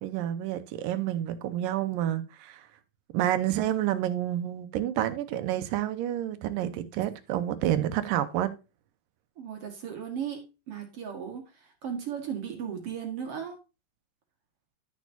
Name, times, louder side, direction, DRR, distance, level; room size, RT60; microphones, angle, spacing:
voice 1, 0.0-2.7 3.1-8.5, right 12 dB, 85° right, 2.5 m, -29 dB
voice 2, 9.4-10.4 10.7-11.4 11.8-13.6, right 8 dB, 50° right, 2.3 m, -35 dB
12.0 x 6.4 x 2.7 m
omnidirectional pair, 3.9 m